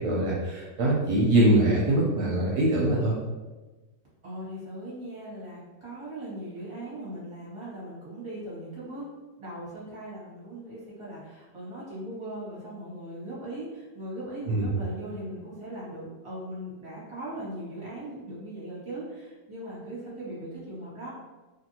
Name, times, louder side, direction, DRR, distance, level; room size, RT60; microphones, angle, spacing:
voice 1, 0.0-3.1 14.5-14.7, right 1 dB, 75° right, -4 dB, 1.0 m, -23 dB
voice 2, 4.2-9.1 9.4-21.1, right 1 dB, 20° right, -8 dB, 1.0 m, -39 dB
2.8 x 2.6 x 2.7 m, 1.2 s
omnidirectional pair, 1.9 m